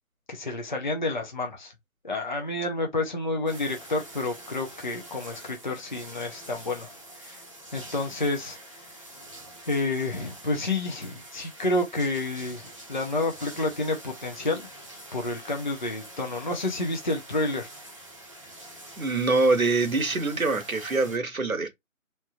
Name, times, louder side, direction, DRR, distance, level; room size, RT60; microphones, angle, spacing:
voice 1, 0.3-1.7 2.0-6.9 7.2-7.4 7.7-8.6 9.7-14.7 15.1-17.7, left 2 dB, 35° left, 0.6 m, -29 dB
sound 1, 3.5-21.2, right 1 dB, 25° right, 0.7 m, -45 dB
voice 2, 19.0-21.7, right 3 dB, 85° right, 1.2 m, -24 dB
3.2 x 2.8 x 2.3 m
figure-of-eight pair, 160°, 41 cm